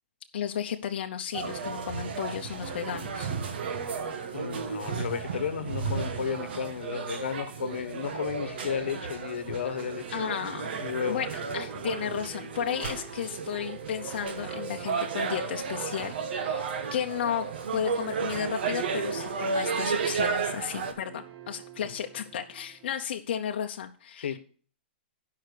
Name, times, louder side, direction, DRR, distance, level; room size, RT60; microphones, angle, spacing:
voice 1, 0.3-3.3 10.1-10.8 11.1-17.5 17.7-24.4, left 9 dB, 60° left, 0.8 m, -33 dB
sound 1, 1.3-20.9, right 5 dB, 60° right, 1.4 m, -33 dB
voice 2, 4.3-10.2 10.8-11.2 24.1-24.4, left 8 dB, 80° left, 1.1 m, -33 dB
sound 2, 9.5-23.0, right 9 dB, 30° right, 0.9 m, -48 dB
10.0 x 5.7 x 6.6 m
hypercardioid pair, 160°, 6 cm